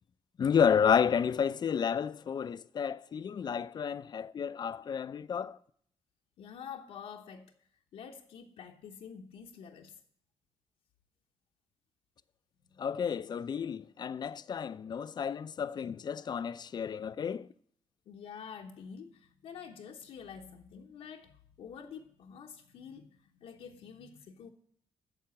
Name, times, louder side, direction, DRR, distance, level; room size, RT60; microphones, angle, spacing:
voice 1, 0.4-5.6 12.8-17.5, left 7 dB, 45° left, 0.4 m, -31 dB
voice 2, 6.4-10.0 12.7-12.8 18.1-24.5, left 7 dB, 80° left, 1.0 m, -48 dB
9.1 x 6.7 x 8.7 m
cardioid pair, 100°, 10 cm